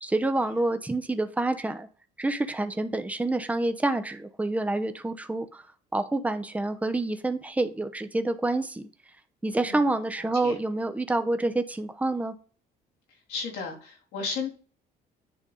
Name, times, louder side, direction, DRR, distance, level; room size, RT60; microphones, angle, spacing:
voice 1, 0.0-1.9 2.2-5.6 5.9-8.9 9.4-12.3, right 2 dB, 10° right, 8 dB, 0.8 m, -27 dB
voice 2, 10.2-10.6 13.3-14.5, left 4 dB, 85° left, -1 dB, 3.1 m, -34 dB
10.0 x 3.4 x 4.0 m, 0.41 s
cardioid pair, 110°, 17 cm